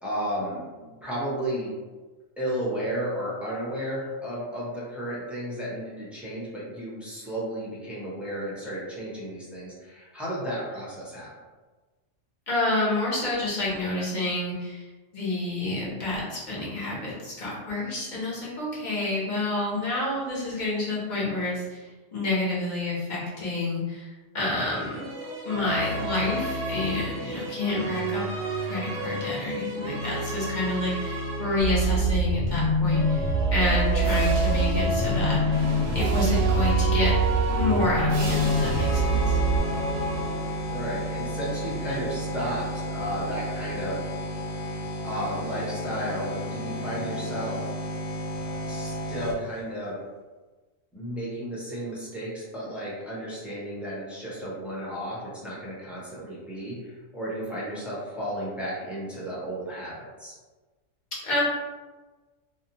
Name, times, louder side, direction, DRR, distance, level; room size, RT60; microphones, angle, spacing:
voice 1, 0.0-1.8 2.4-11.3 40.7-44.1 45.0-47.7 48.6-50.0 50.9-60.3, equal, ahead, -8 dB, 0.4 m, -33 dB
voice 2, 12.5-14.8 15.1-21.9 22.1-25.0 25.4-28.3 28.6-35.6 35.9-37.2 37.5-39.4 61.2-61.4, left 2 dB, 40° left, -6 dB, 0.9 m, -29 dB
sound 1, 24.4-32.2 32.8-40.8, right 1 dB, 65° right, 0.8 m, -31 dB
sound 2, 31.6-39.6, right 2 dB, 90° right, 1.0 m, -24 dB
sound 3, 38.2-49.6, equal, 80° left, 0.9 m, -32 dB
2.6 x 2.1 x 2.7 m, 1.3 s
omnidirectional pair, 1.3 m